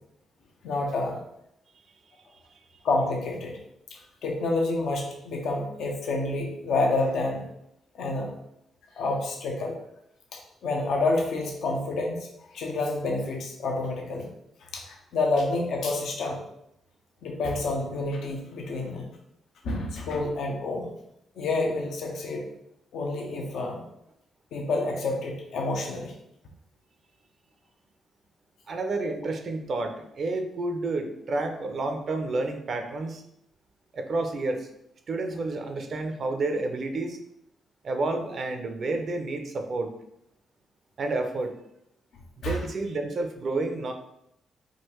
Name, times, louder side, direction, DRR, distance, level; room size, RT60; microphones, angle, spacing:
voice 1, 0.6-1.2 2.8-3.6 4.2-7.4 8.0-8.3 9.0-9.8 10.6-12.3 12.5-14.3 14.7-16.4 17.2-19.1 19.6-20.9 21.4-22.5 22.9-23.8 24.5-26.1 42.4-42.6, left 2 dB, 70° left, 1 dB, 0.6 m, -28 dB
voice 2, 28.7-33.2 33.9-34.7 35.1-37.2 37.8-39.9 41.0-41.5 42.4-43.9, right 2 dB, 55° right, 5 dB, 0.5 m, -30 dB
3.7 x 2.4 x 3.0 m, 0.79 s
hypercardioid pair, 40°, 0 cm